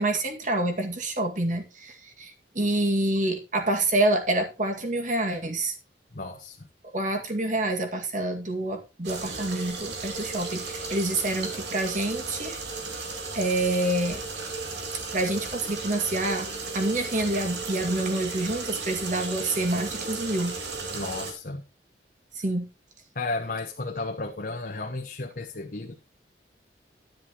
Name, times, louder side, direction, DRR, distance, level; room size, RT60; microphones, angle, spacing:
voice 1, 0.0-5.8 6.9-12.6 13.3-14.2 15.1-20.6 22.4-22.7, right 2 dB, 45° right, 4 dB, 2.1 m, -27 dB
voice 2, 6.1-6.7 20.9-21.6 23.1-26.0, left 3 dB, 55° left, 1 dB, 1.1 m, -33 dB
sound 1, 9.0-21.3, right 3 dB, 80° right, 2.5 m, -35 dB
10.5 x 10.0 x 3.0 m, 0.29 s
head